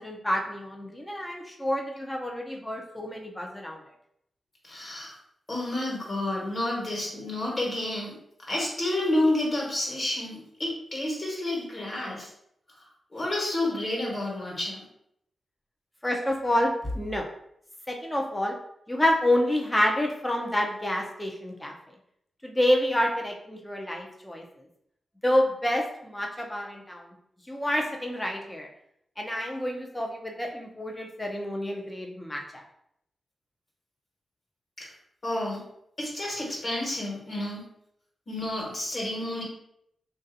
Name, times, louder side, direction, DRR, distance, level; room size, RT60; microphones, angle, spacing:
voice 1, 0.0-3.8 16.0-17.3 17.9-18.6 18.9-21.7 22.4-24.4 25.2-27.0 27.5-28.7 29.2-32.6, left 1 dB, 10° left, 1 dB, 0.6 m, -28 dB
voice 2, 4.7-5.1 5.5-8.1 8.5-12.3 13.1-14.8 35.2-35.6 36.0-37.6 38.3-39.4, left 1 dB, 40° left, -3 dB, 1.4 m, -30 dB
3.2 x 2.6 x 2.6 m, 0.74 s
cardioid pair, 70°, 0 cm